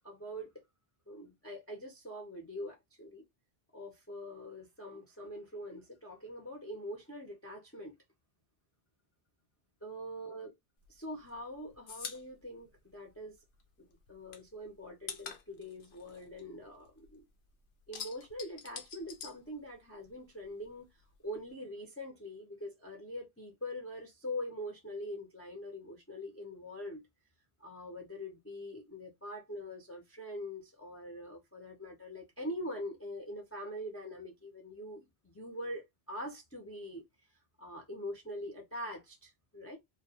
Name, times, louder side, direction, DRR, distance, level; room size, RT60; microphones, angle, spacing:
voice 1, 0.0-0.5 1.1-3.2 3.7-7.9 9.8-10.5 10.9-13.4 13.8-17.3 17.9-20.9 21.2-27.0 27.6-37.0 37.6-39.8, left 1 dB, 20° left, 0.5 m, -43 dB
sound 1, 10.8-13.6 13.9-17.2 17.5-20.1 20.4-21.5, left 6 dB, 80° left, 0.9 m, -47 dB
2.2 x 2.2 x 2.7 m
omnidirectional pair, 1.1 m